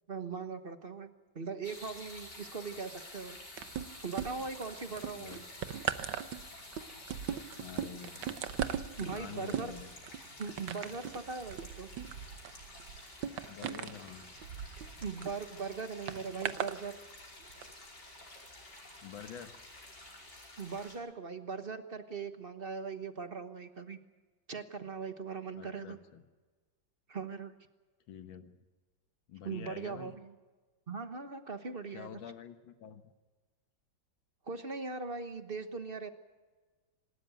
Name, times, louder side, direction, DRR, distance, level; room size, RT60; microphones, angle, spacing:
voice 1, 0.1-1.1 1.3-3.4 4.0-5.3 9.0-9.7 10.4-11.9 15.0-17.0 20.6-24.0 24.5-26.0 27.1-27.5 29.4-30.3 30.9-32.1 34.5-36.1, right 4 dB, 35° right, 8 dB, 1.1 m, -40 dB
sound 1, 1.6-20.9, left 2 dB, 60° left, 5.7 m, -51 dB
sound 2, 3.6-4.6 5.0-15.3 16.1-16.8 17.5-17.6, right 9 dB, 80° right, 1.7 m, -39 dB
voice 2, 5.2-5.7 7.6-8.6 9.0-9.9 13.5-14.2 16.5-16.6 19.0-19.6 25.5-26.2 28.1-28.6 29.3-30.2 31.9-33.1, left 8 dB, 90° left, 8 dB, 2.0 m, -48 dB
27.0 x 13.0 x 9.1 m, 1.3 s
omnidirectional pair, 2.1 m